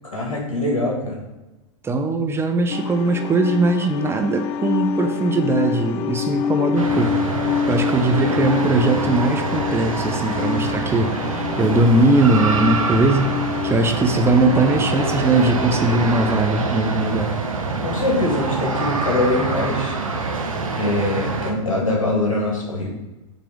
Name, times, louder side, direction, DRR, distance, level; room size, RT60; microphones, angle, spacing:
voice 1, 0.1-1.2 17.8-20.3 20.8-22.9, left 2 dB, 90° left, -1 dB, 1.9 m, -23 dB
voice 2, 1.8-7.2 7.7-13.3 13.6-17.3, right 2 dB, 15° right, 5 dB, 0.6 m, -20 dB
sound 1, 2.7-16.4, left 8 dB, 40° left, 0.4 m, -27 dB
sound 2, 6.8-21.5, right 4 dB, 90° right, 0.8 m, -25 dB
5.8 x 3.4 x 4.9 m, 1.1 s
hypercardioid pair, 105°, 17 cm